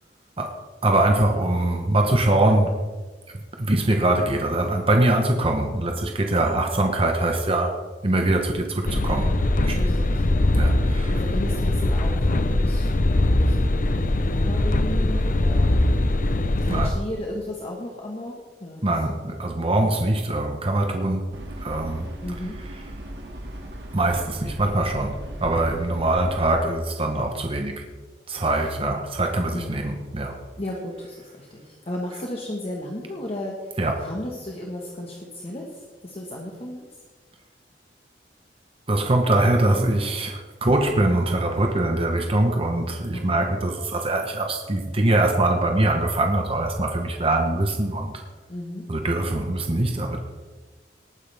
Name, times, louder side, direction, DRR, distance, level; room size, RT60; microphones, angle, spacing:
voice 1, 0.4-2.8 3.3-7.7 8.0-9.4 9.6-9.8 10.5-11.1 16.7-16.9 18.8-21.3 21.6-22.1 23.9-27.8 28.3-30.4 33.8-34.1 38.9-48.2 48.9-50.2, right 1 dB, 35° right, 3 dB, 1.0 m, -23 dB
sound 1, 8.8-16.9, left 1 dB, 50° left, 0.7 m, -21 dB
voice 2, 9.7-10.2 10.8-15.9 16.6-18.9 22.2-22.5 28.6-28.7 29.5-29.9 30.6-36.9 43.1-43.5 48.5-48.8, left 1 dB, 35° left, -1 dB, 1.4 m, -35 dB
sound 2, 21.3-26.5, right 1 dB, 70° right, 2.1 m, -38 dB
18.5 x 9.6 x 3.5 m, 1.4 s
head